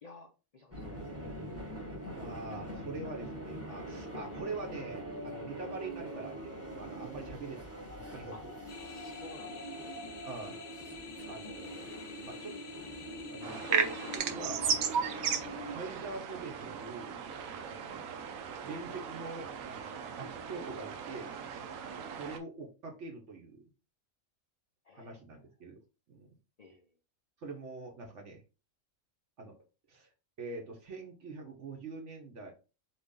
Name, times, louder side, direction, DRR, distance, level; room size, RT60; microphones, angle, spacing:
voice 1, 0.0-1.4 8.3-8.5 8.8-9.9 17.8-17.9 21.9-22.2 24.8-25.2 26.6-26.9, left 3 dB, 85° left, 5 dB, 0.3 m, -54 dB
sound 1, 0.7-15.8, right 1 dB, 10° right, 0.9 m, -43 dB
voice 2, 2.1-8.6 10.2-10.6 11.2-11.9 12.3-12.6 13.3-15.1 15.6-17.3 17.7-18.3 18.7-21.4 22.2-23.6 24.9-25.8 26.1-26.3 27.4-28.4 29.4-29.5 29.9-30.1 30.4-32.5, right 3 dB, 65° right, 2 dB, 1.1 m, -44 dB
sound 2, 8.7-14.2, left 4 dB, 55° left, 0.7 m, -47 dB
sound 3, 13.4-22.4, right 7 dB, 85° right, 1.1 m, -36 dB
4.1 x 3.0 x 3.6 m, 0.32 s
omnidirectional pair, 1.4 m